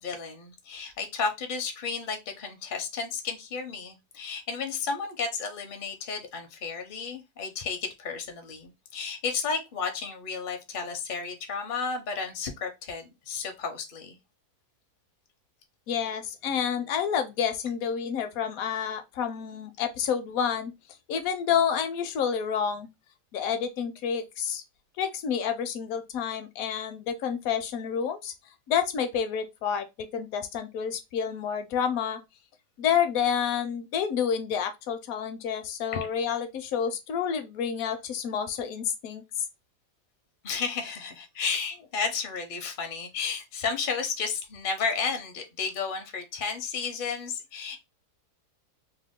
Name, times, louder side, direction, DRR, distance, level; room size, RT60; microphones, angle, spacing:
voice 1, 0.0-14.2 35.9-36.1 40.4-47.8, left 5 dB, 55° left, 0.6 m, -33 dB
voice 2, 15.9-20.7 21.1-22.9 23.3-24.6 25.0-28.3 28.7-32.2 32.8-39.4, left 7 dB, 70° left, 0.9 m, -29 dB
2.9 x 2.2 x 3.5 m
omnidirectional pair, 1.7 m